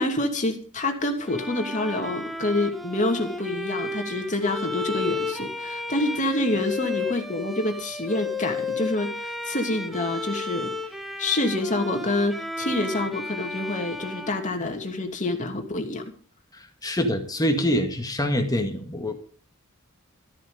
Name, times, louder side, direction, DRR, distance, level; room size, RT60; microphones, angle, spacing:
voice 1, 0.0-10.7 11.2-16.1, left 2 dB, 35° left, 4 dB, 2.8 m, -27 dB
Bowed string instrument, 1.3-15.2, left 3 dB, ahead, 1.3 m, -33 dB
voice 2, 16.5-19.1, equal, 20° left, 5 dB, 2.0 m, -25 dB
13.5 x 13.5 x 5.2 m, 0.42 s
head